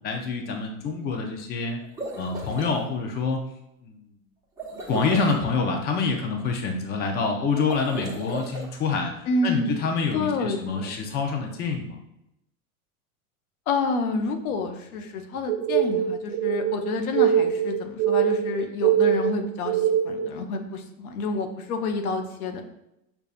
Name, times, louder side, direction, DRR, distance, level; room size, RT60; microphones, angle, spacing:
voice 1, 0.0-1.8 2.1-3.4 3.8-4.0 4.9-9.1 9.4-12.0, left 4 dB, 25° left, 2 dB, 0.5 m, -26 dB
sound 1, 1.8-2.7 4.6-5.5 7.6-8.7, right 2 dB, 10° right, 0.7 m, -35 dB
voice 2, 9.3-9.7 10.1-10.9 13.7-22.6, left 3 dB, 80° left, 5 dB, 0.7 m, -28 dB
sound 2, 15.5-20.3, right 10 dB, 45° right, 0.5 m, -23 dB
5.3 x 2.3 x 2.4 m, 0.84 s
supercardioid pair, 120°, 43 cm